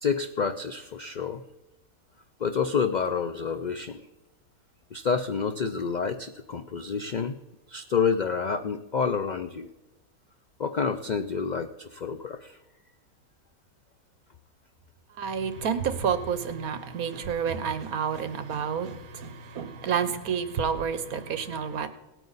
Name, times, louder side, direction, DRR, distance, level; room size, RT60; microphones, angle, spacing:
voice 1, 0.0-1.4 2.4-4.0 4.9-7.4 7.7-9.7 10.6-12.6, left 6 dB, 85° left, 0.4 m, -28 dB
voice 2, 15.2-21.9, right 7 dB, 75° right, 1.4 m, -29 dB
18.0 x 9.0 x 4.1 m
omnidirectional pair, 1.5 m